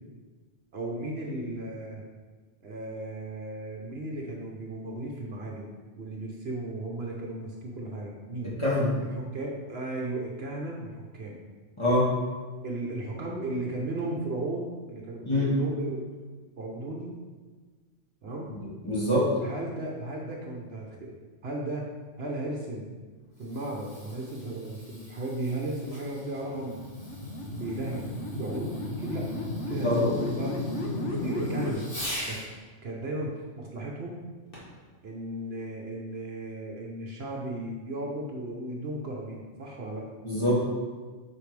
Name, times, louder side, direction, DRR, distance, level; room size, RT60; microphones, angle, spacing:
voice 1, 0.7-2.0 2.6-5.7 6.0-8.5 9.3-11.4 12.6-16.0 16.6-17.1 18.2-18.5 19.4-21.1 21.4-21.9 22.2-22.9 23.4-26.9 27.5-29.3 29.7-30.5 31.0-31.9 32.3-32.4 32.8-34.2 35.0-40.1, right 2 dB, 60° right, -1 dB, 1.1 m, -35 dB
voice 2, 8.6-8.9 11.8-12.1 15.2-15.6 18.5-19.3 29.8-30.1 40.2-40.6, left 1 dB, 25° left, -8 dB, 2.1 m, -25 dB
Fireworks, 23.2-32.5 34.5-34.9 35.6-35.7, equal, 45° left, 2.2 m, -44 dB
sound 1, 26.3-31.7, left 1 dB, 70° left, 1.3 m, -34 dB
8.4 x 5.1 x 3.3 m, 1.4 s
omnidirectional pair, 1.3 m